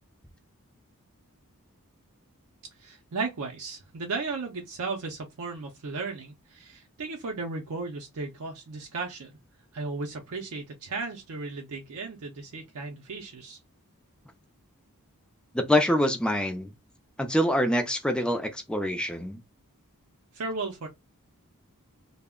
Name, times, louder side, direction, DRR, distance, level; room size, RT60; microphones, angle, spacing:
voice 1, 2.8-9.3 9.7-13.6 20.3-20.9, right 3 dB, 70° right, 0.5 m, -35 dB
voice 2, 15.5-16.7 17.2-19.4, left 1 dB, 5° left, 0.4 m, -25 dB
2.2 x 2.0 x 3.5 m
head